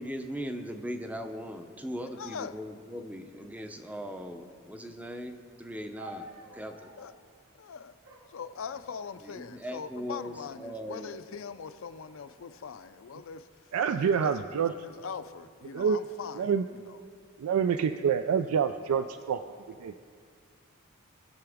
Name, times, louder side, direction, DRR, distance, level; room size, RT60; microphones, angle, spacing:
voice 1, 0.0-6.9 9.2-11.2, equal, 5° right, 7 dB, 0.5 m, -39 dB
voice 2, 2.1-2.6 7.0-7.1 7.6-8.0 8.3-13.5 14.0-14.3 14.6-17.0, left 6 dB, 65° left, 12 dB, 0.4 m, -41 dB
Dog Whining, 6.0-7.2 8.0-9.2 10.0-10.5 10.9-11.4 12.1-13.4 14.2-14.6, equal, 65° right, 2.3 m, -51 dB
voice 3, 13.7-14.7 15.7-16.0 16.4-16.6 17.4-20.0, right 7 dB, 85° right, 9 dB, 0.3 m, -27 dB
19.5 x 6.8 x 3.5 m, 2.1 s
head